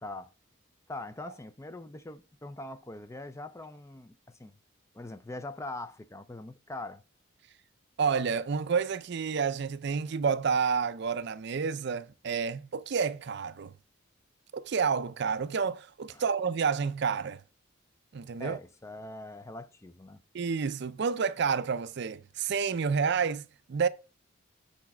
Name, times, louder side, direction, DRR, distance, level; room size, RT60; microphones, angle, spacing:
voice 1, 0.0-0.3 0.9-4.6 4.9-7.0 16.1-16.2 18.4-20.2, left 2 dB, 15° left, 0.4 m, -42 dB
voice 2, 8.0-13.7 14.5-17.4 18.1-18.6 20.3-23.9, right 6 dB, 55° right, 0.4 m, -29 dB
7.1 x 4.2 x 5.9 m
head